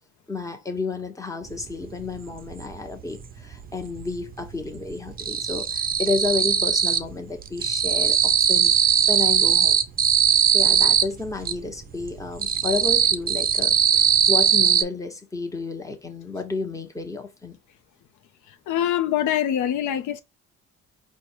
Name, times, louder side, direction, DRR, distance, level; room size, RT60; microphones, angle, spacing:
voice 1, 0.3-9.8 10.5-17.6, left 3 dB, 10° left, 0.9 m, -31 dB
sound 1, 1.6-1.7 2.0-3.3 3.5-4.2 4.5-7.2 7.4-11.6 12.0-14.8, right 8 dB, 30° right, 0.5 m, -20 dB
voice 2, 18.7-20.2, left 11 dB, 80° left, 0.6 m, -24 dB
4.4 x 2.2 x 4.4 m
cardioid pair, 90°, 30 cm